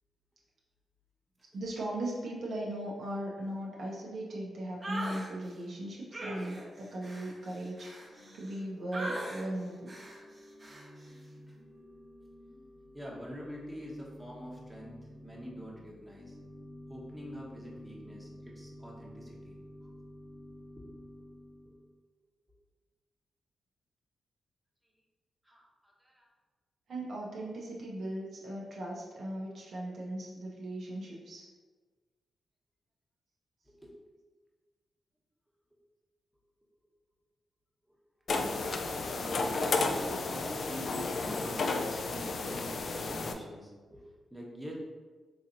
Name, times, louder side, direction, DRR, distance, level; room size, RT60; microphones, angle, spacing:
voice 1, 1.5-9.9 26.9-31.5, right 1 dB, 70° right, -4 dB, 0.7 m, -38 dB
sound 1, 4.8-5.3 6.1-8.6 8.9-9.5 9.9-10.2 10.6-10.9, right 1 dB, 40° right, 0.8 m, -40 dB
Organ / Church bell, 7.8-22.0, left 1 dB, 90° left, 1.0 m, -51 dB
voice 2, 12.9-16.4 16.9-19.9 20.8-20.9 21.6-21.8 25.4-26.3 33.7-33.9 37.9-38.4 39.1-44.7, equal, 10° right, -3 dB, 1.0 m, -46 dB
sound 2, 38.3-43.3, left 3 dB, 60° left, 0.3 m, -32 dB
4.0 x 2.9 x 2.5 m, 1.4 s
cardioid pair, 60°, 0 cm